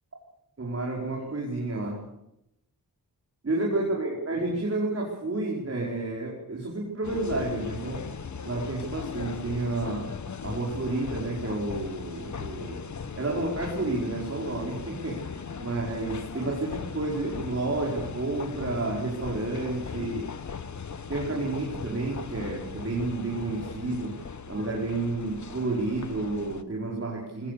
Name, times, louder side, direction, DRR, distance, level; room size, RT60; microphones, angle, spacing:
voice 1, 0.6-2.0 3.4-8.1 8.4-10.1 10.4-12.9 13.2-20.3 21.1-24.2 24.5-27.5, right 2 dB, 40° right, -2 dB, 5.3 m, -30 dB
sound 1, 7.0-26.6, left 5 dB, 55° left, 1.2 m, -38 dB
22.5 x 19.5 x 6.9 m, 0.85 s
wide cardioid pair, 145°, 35 cm